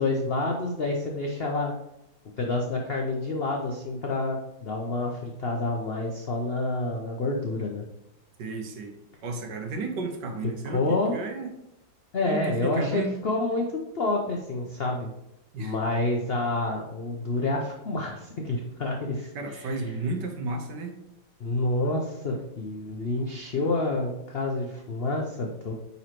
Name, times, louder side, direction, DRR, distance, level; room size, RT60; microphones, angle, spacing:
voice 1, 0.0-1.7 2.4-7.8 10.6-11.1 12.1-13.7 13.9-15.1 15.6-19.7 21.4-25.7, left 2 dB, 90° left, 0 dB, 0.5 m, -28 dB
voice 2, 8.4-8.9 9.2-11.5 12.2-13.1 15.5-15.8 17.2-17.3 19.3-20.9, right 3 dB, 70° right, 5 dB, 1.5 m, -33 dB
9.2 x 4.1 x 3.0 m, 0.84 s
omnidirectional pair, 2.1 m